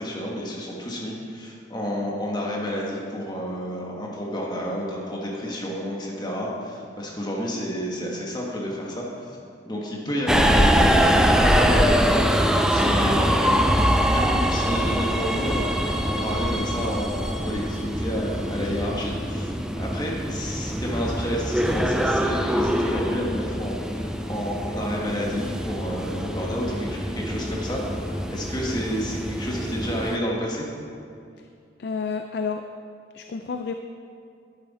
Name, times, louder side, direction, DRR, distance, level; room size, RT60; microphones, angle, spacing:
voice 1, 0.0-9.1 9.6-30.7, equal, 20° left, -3 dB, 1.5 m, -30 dB
Subway metro underground, 10.3-30.2, equal, 5° right, 0.4 m, -23 dB
voice 2, 31.8-32.7 33.1-33.7, left 5 dB, 55° left, 6 dB, 0.4 m, -30 dB
11.0 x 9.0 x 4.2 m, 2.4 s
head